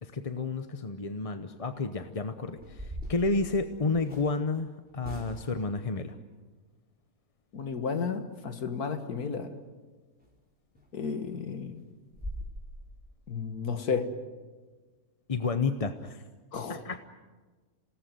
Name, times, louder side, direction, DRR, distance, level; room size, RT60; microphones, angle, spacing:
voice 1, 0.0-6.2 15.3-16.2 16.7-17.0, left 3 dB, 30° left, 9 dB, 0.8 m, -31 dB
sound 1, 2.5-4.3 5.0-5.7 10.2-10.3 10.7-10.9 11.3-11.4 11.7-11.8 12.1-12.5, equal, 5° right, 4.6 m, -41 dB
voice 2, 7.5-9.5 10.9-11.7 13.3-14.1 16.5-16.8, left 5 dB, 90° left, 8 dB, 2.1 m, -32 dB
28.0 x 18.5 x 9.4 m, 1.3 s
omnidirectional pair, 1.6 m